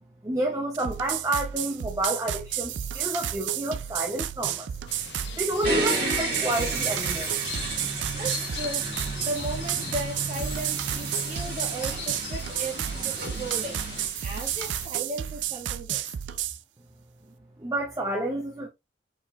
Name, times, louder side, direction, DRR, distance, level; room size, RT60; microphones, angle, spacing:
voice 1, 0.2-4.7 5.4-7.4 17.6-18.7, right 1 dB, 20° right, 0.6 m, -29 dB
sound 1, 0.7-16.6, right 11 dB, 85° right, 0.4 m, -32 dB
sound 2, 4.9-14.9, left 6 dB, 70° left, 0.8 m, -40 dB
sound 3, 5.6-14.1, right 3 dB, 60° right, 2.4 m, -33 dB
voice 2, 8.1-13.8 14.2-16.4, right 2 dB, 35° right, 1.6 m, -36 dB
5.1 x 3.6 x 2.3 m
head